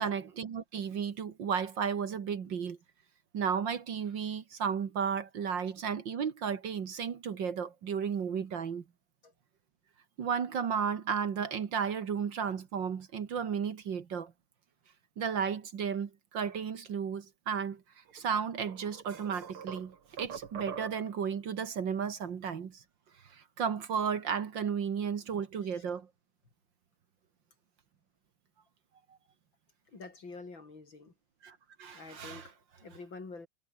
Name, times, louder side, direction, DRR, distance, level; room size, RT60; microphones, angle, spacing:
voice 1, 0.0-2.8 3.3-8.8 10.2-14.3 15.2-17.8 18.1-22.8 23.2-26.1 31.4-32.5, right 7 dB, 60° right, 2.2 m, -34 dB
sound 1, 18.1-18.2 18.7-21.3, right 7 dB, 75° right, 3.0 m, -44 dB
voice 2, 29.9-31.1 31.9-33.5, left 3 dB, 60° left, 5.2 m, -47 dB
omnidirectional pair, 2.4 m